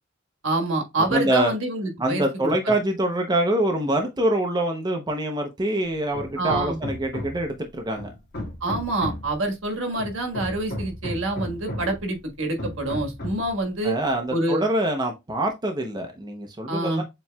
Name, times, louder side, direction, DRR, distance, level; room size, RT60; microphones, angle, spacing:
voice 1, 0.4-2.5 6.4-6.8 8.6-13.9 14.3-14.6 16.7-17.0, right 2 dB, 75° right, 1.4 m, -26 dB
voice 2, 1.1-1.5 2.0-8.1 13.8-17.0, right 1 dB, 20° right, 0.6 m, -25 dB
Hammer, 6.1-7.5 8.0-9.4 10.0-12.0 12.6-13.5, left 1 dB, 55° left, 1.9 m, -34 dB
7.1 x 3.0 x 2.2 m
head